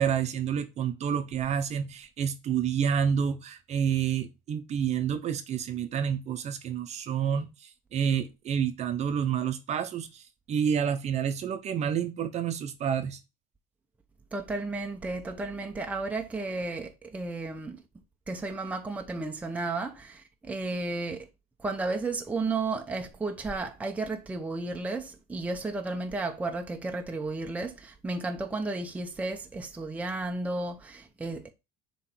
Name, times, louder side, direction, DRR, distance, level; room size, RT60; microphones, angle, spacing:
voice 1, 0.0-10.2 10.5-13.2, right 8 dB, 35° right, 0.7 m, -29 dB
voice 2, 14.3-17.8 18.3-21.3 21.6-31.5, right 3 dB, 10° right, 0.6 m, -33 dB
7.3 x 3.1 x 4.3 m
cardioid pair, 140°, 18 cm